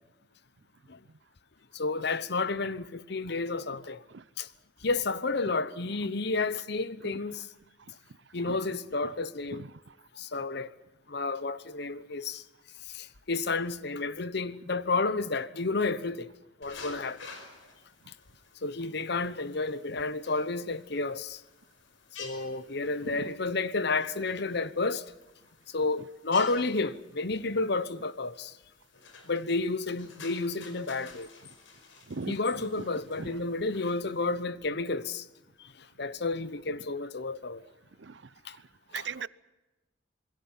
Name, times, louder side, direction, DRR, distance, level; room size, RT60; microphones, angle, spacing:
voice 1, 1.7-4.0 4.4-4.5 4.8-7.4 8.3-9.6 10.1-10.7 11.1-12.4 12.9-16.3 16.6-17.3 18.6-21.4 22.2-25.1 25.7-28.5 29.3-31.3 32.3-35.3 35.6-37.6 38.4-38.6, left 3 dB, 60° left, 1.0 m, -31 dB
voice 2, 7.8-8.6 9.0-9.1 9.5-10.0 10.4-10.5 18.0-18.1 23.1-23.3 26.0-26.1 32.0-32.9 33.2-33.4 38.0-39.3, right 4 dB, 65° right, 0.7 m, -42 dB
sound 1, 16.6-34.4, left 4 dB, 85° left, 5.0 m, -51 dB
27.5 x 21.0 x 5.7 m
head